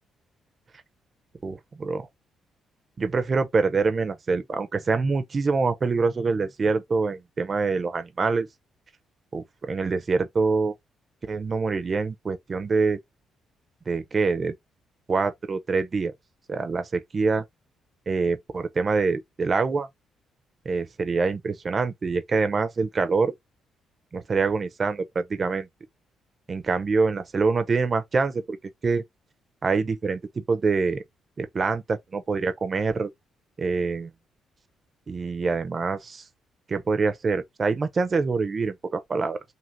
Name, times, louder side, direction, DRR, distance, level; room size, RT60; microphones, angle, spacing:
voice 1, 1.4-2.1 3.0-8.5 9.3-10.7 11.3-13.0 13.9-14.5 15.1-16.1 16.5-17.4 18.1-19.9 20.7-23.3 24.1-25.7 26.5-28.6 28.8-29.0 29.6-31.0 31.4-33.1 33.6-34.1 35.1-36.2 36.7-39.4, right 4 dB, 35° right, 0.5 m, -25 dB
2.8 x 2.6 x 2.7 m
cardioid pair, 90°, 0 cm